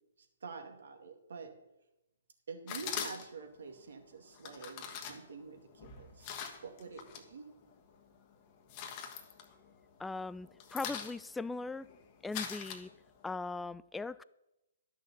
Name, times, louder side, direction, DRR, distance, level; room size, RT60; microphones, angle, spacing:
voice 1, 0.4-1.5 2.5-6.3 6.6-7.5, right 5 dB, 70° right, 4 dB, 2.2 m, -47 dB
Pickup item, 2.7-3.5 4.3-7.3 7.6-8.2 8.5-10.0 10.3-13.3, left 7 dB, 35° left, 1.4 m, -43 dB
voice 2, 10.0-11.9 12.2-12.9 13.2-14.2, left 3 dB, 5° left, 17 dB, 0.3 m, -39 dB
11.5 x 6.4 x 6.9 m, 0.94 s
figure-of-eight pair, 130°, 0 cm